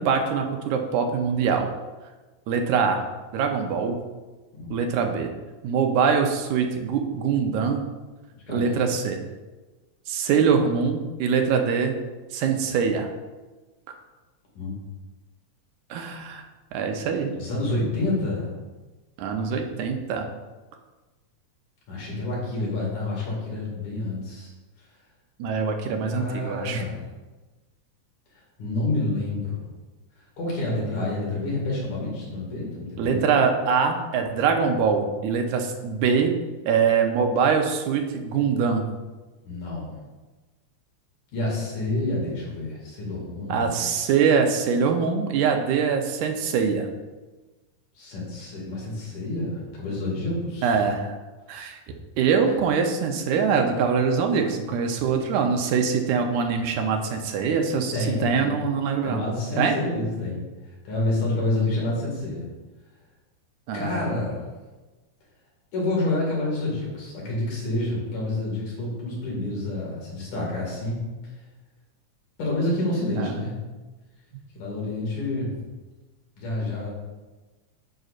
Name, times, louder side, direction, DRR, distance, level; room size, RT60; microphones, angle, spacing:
voice 1, 0.0-1.7 2.5-3.0 3.3-4.0 4.7-5.3 5.6-7.9 8.5-9.2 10.1-12.0 12.3-13.1 15.9-16.4 16.7-17.4 19.2-20.2 25.4-26.8 33.0-36.3 36.7-38.9 43.5-46.9 50.6-51.1 51.5-51.8 52.2-59.2 59.6-59.7 63.7-64.0 73.2-73.4, right 6 dB, 90° right, 4 dB, 2.2 m, -23 dB
voice 2, 8.5-8.9 14.6-14.7 17.4-18.5 21.9-24.5 26.0-27.0 28.6-29.6 30.4-33.2 39.5-39.9 41.3-43.8 48.0-50.8 57.9-58.7 59.0-60.4 60.9-62.5 63.7-64.5 65.7-71.0 72.4-73.6 74.6-75.5 76.4-76.9, left 2 dB, 85° left, -4 dB, 3.7 m, -28 dB
9.3 x 6.4 x 2.5 m, 1.2 s
omnidirectional pair, 3.3 m